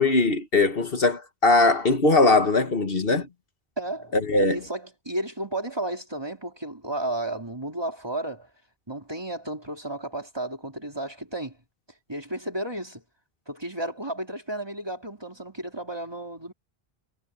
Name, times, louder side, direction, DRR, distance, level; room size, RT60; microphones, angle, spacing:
voice 1, 0.0-3.3 4.3-4.6, left 3 dB, 60° left, 1.7 m, -20 dB
voice 2, 3.8-8.5 8.9-11.6 12.1-13.0 13.5-16.5, right 1 dB, 25° right, 3.3 m, -33 dB
omnidirectional pair, 1.1 m